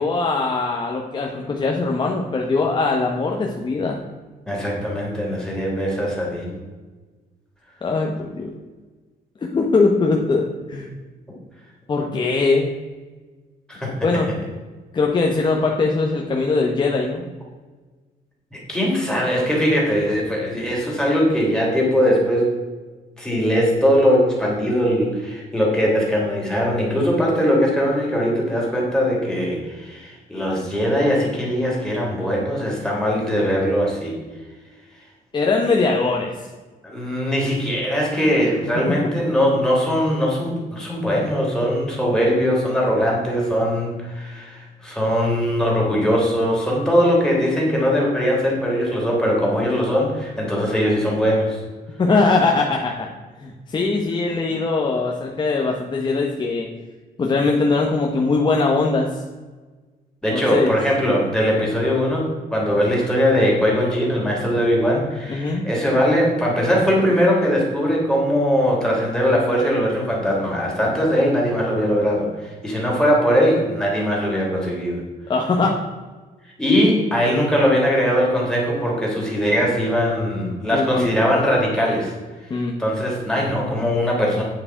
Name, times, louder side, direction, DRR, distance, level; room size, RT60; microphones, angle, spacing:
voice 1, 0.0-4.0 7.8-8.5 9.4-10.9 11.9-12.7 14.0-14.3 14.9-17.2 35.3-36.3 52.0-53.1 53.4-56.7 57.2-59.2 60.3-60.8 65.3-65.7 75.3-75.8 80.7-81.1 82.5-82.8, left 3 dB, 30° left, 0 dB, 1.0 m, -21 dB
voice 2, 4.5-6.6 13.7-14.1 18.5-22.6 23.2-34.2 36.8-51.6 60.2-75.0 76.6-82.1 82.8-84.4, equal, 5° left, -4 dB, 3.3 m, -20 dB
8.9 x 7.5 x 4.6 m, 1.3 s
cardioid pair, 140°, 16 cm